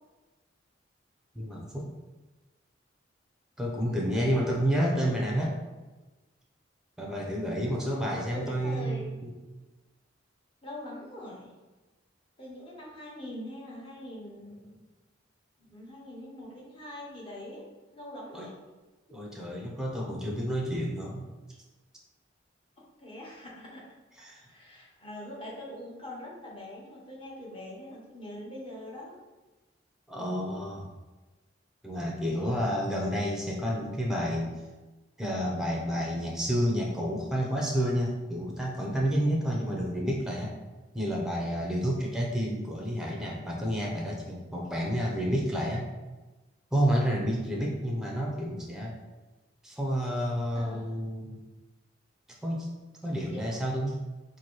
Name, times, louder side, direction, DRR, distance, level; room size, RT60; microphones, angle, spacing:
voice 1, 1.3-1.9 3.6-5.5 7.0-9.3 18.3-18.5 19.1-21.3 24.2-24.5 30.1-30.9 31.8-34.5 35.2-40.6 40.9-45.9 46.7-49.0 49.6-51.4 52.4-52.7 53.0-53.9, equal, 5° right, -2 dB, 0.6 m, -30 dB
voice 2, 7.7-9.1 10.6-11.5 12.4-14.8 15.6-17.7 17.9-18.5 23.0-23.8 24.5-29.2 32.4-32.8 50.5-50.9 53.1-53.6, left 1 dB, 30° left, -4 dB, 0.9 m, -43 dB
3.0 x 2.6 x 4.4 m, 1.2 s
head